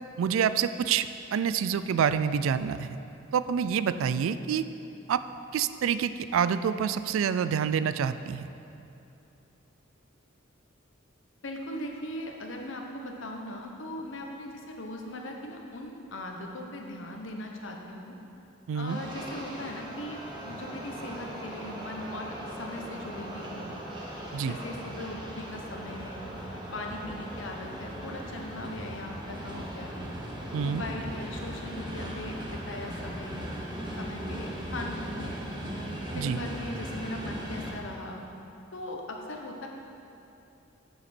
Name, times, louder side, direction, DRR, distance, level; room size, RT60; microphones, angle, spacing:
voice 1, 0.2-3.0 3.3-4.7 5.1-5.2 5.5-8.5 18.7-19.0 24.3-24.6 30.5-30.8 36.1-36.4, right 7 dB, 75° right, 13 dB, 0.3 m, -27 dB
voice 2, 11.4-18.1 18.7-23.8 24.4-26.3 26.7-30.0 30.6-33.6 34.0-35.4 36.1-38.2 38.7-39.7, left 1 dB, 65° left, 2 dB, 1.0 m, -39 dB
sound 1, 18.9-37.7, equal, 20° right, 1.0 m, -38 dB
8.8 x 6.9 x 4.3 m, 2.8 s
head